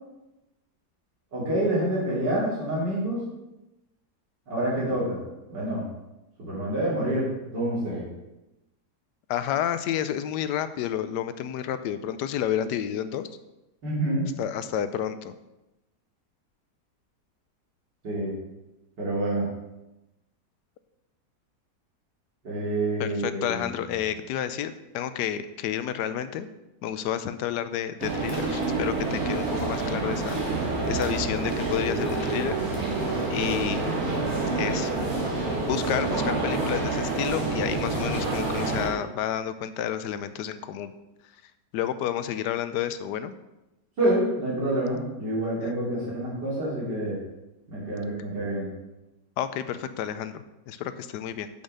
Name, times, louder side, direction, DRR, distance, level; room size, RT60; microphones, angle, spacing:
voice 1, 1.3-3.2 4.5-5.2 5.5-5.8 6.4-8.1 13.8-14.3 18.0-18.4 19.0-19.5 22.4-23.9 44.0-47.2 47.7-48.7, right 1 dB, 85° right, -8 dB, 3.6 m, -27 dB
voice 2, 9.3-13.3 14.4-15.3 23.0-26.5 26.8-32.6 33.3-33.9 34.5-34.9 35.7-40.9 41.7-43.3 49.4-51.5, left 10 dB, 80° left, 11 dB, 1.2 m, -30 dB
sound 1, 28.0-38.9, right 3 dB, 55° right, 2.1 m, -28 dB
7.1 x 5.5 x 6.4 m, 0.97 s
omnidirectional pair, 1.8 m